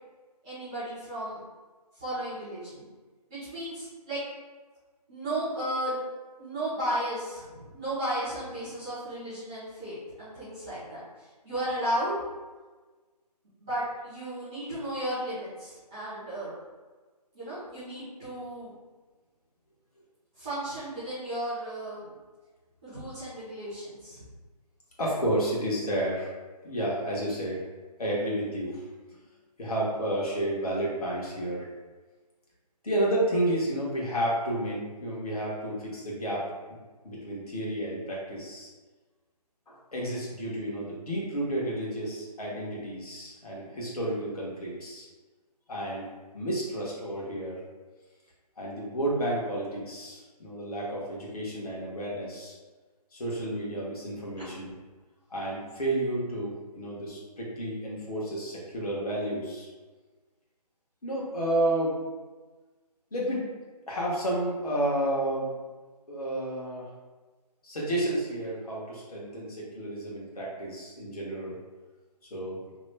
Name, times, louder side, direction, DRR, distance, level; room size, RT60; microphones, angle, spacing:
voice 1, 0.4-1.4 1.9-2.9 3.3-4.2 5.1-6.0 6.4-12.1 13.6-16.5 17.3-18.7 20.4-22.1 22.8-24.2 54.4-54.5, right 1 dB, 5° right, -16 dB, 0.4 m, -34 dB
voice 2, 25.0-26.3 26.6-27.6 28.0-28.8 29.6-31.7 32.8-36.5 37.0-38.7 39.7-45.1 45.7-47.6 48.6-52.5 53.1-54.7 55.3-59.7 61.0-62.0 63.1-63.4 63.9-65.5 66.1-66.9 67.6-71.6 72.3-72.6, right 1 dB, 65° left, -5 dB, 1.2 m, -31 dB
2.9 x 2.2 x 3.3 m, 1.3 s
figure-of-eight pair, 155°, 21 cm